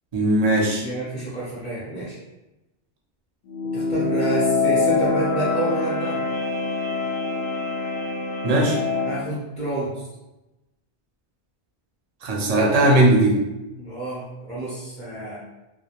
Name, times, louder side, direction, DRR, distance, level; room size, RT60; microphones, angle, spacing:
voice 1, 0.1-0.8 8.4-8.8 12.2-13.4, right 1 dB, 50° right, -2 dB, 0.5 m, -18 dB
voice 2, 0.8-2.2 3.7-6.2 9.0-10.1 13.8-15.4, right 1 dB, 10° left, -9 dB, 0.4 m, -29 dB
sound 1, 3.5-9.2, left 3 dB, 65° left, 0.7 m, -24 dB
2.3 x 2.1 x 2.8 m, 1.0 s
omnidirectional pair, 1.1 m